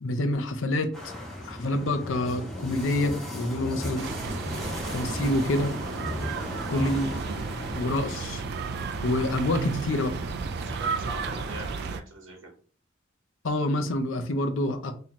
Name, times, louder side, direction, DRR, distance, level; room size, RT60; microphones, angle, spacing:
voice 1, 0.0-0.9 1.4-4.1 4.9-5.7 6.7-7.1 7.7-8.4 9.0-10.1 13.4-14.9, left 1 dB, 75° left, 7 dB, 0.6 m, -27 dB
sound 1, 0.9-12.0, left 1 dB, 5° left, 1.2 m, -36 dB
sound 2, 4.0-12.0, right 5 dB, 55° right, 0.3 m, -33 dB
voice 2, 10.6-12.5, right 1 dB, 75° right, 1 dB, 1.0 m, -41 dB
2.9 x 2.8 x 4.2 m, 0.41 s
head